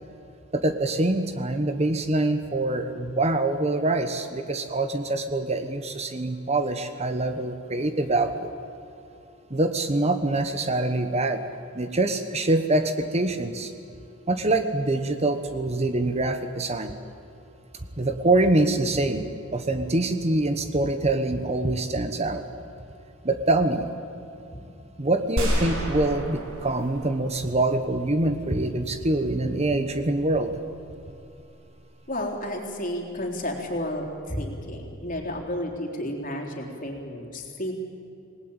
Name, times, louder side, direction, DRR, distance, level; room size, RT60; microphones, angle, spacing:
voice 1, 0.5-8.5 9.5-11.4 11.7-13.7 14.3-16.9 18.0-19.2 19.5-22.4 23.2-23.9 25.0-30.5, right 2 dB, 30° right, 8 dB, 1.1 m, -25 dB
sound 1, 25.4-28.3, equal, 70° right, 6.6 m, -30 dB
voice 2, 32.1-37.7, left 1 dB, 40° left, 2 dB, 3.8 m, -32 dB
27.5 x 19.5 x 8.9 m, 2.7 s
head